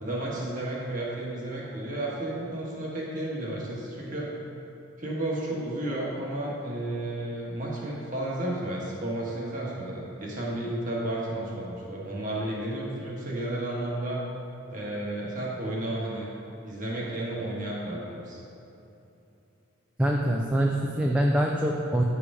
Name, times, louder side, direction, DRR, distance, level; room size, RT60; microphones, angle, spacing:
voice 1, 0.0-4.3 5.0-14.2 14.7-16.3 16.6-18.4, right 1 dB, 35° right, -4 dB, 1.5 m, -32 dB
voice 2, 20.0-22.0, right 1 dB, 5° right, -1 dB, 0.3 m, -24 dB
9.9 x 5.0 x 4.8 m, 2.9 s
head